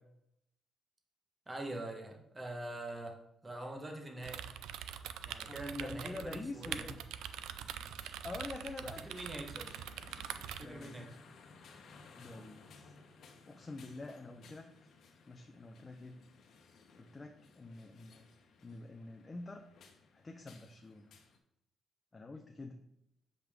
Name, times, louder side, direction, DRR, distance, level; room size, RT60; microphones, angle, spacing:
voice 1, 1.5-3.2 3.4-4.4 5.2-6.8 9.0-9.7 10.6-11.2, right 1 dB, 20° right, 2 dB, 1.3 m, -43 dB
sound 1, 3.8-21.4, left 4 dB, 65° left, 1.1 m, -60 dB
sound 2, 4.2-10.7, right 10 dB, 90° right, 0.4 m, -44 dB
voice 2, 5.5-7.0 8.2-9.1 10.6-11.0 12.2-12.9 13.5-14.7 15.3-16.2 17.0-18.3 18.6-19.7 20.1-21.1 22.1-22.8, left 2 dB, 25° left, 3 dB, 0.7 m, -46 dB
7.8 x 5.2 x 3.6 m, 0.79 s
cardioid pair, 90°, 0 cm